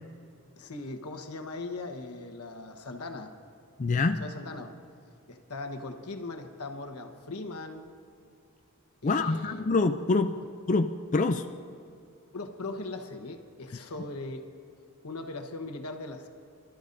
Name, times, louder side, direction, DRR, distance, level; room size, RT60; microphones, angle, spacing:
voice 1, 0.6-3.3 4.2-4.7 5.3-7.9 9.0-9.6 12.3-14.5 15.0-16.3, left 2 dB, 90° left, 5 dB, 1.2 m, -39 dB
voice 2, 3.8-4.2 9.0-10.4 10.7-11.5, left 3 dB, 35° left, 6 dB, 0.4 m, -25 dB
26.5 x 13.0 x 2.7 m, 2.5 s
head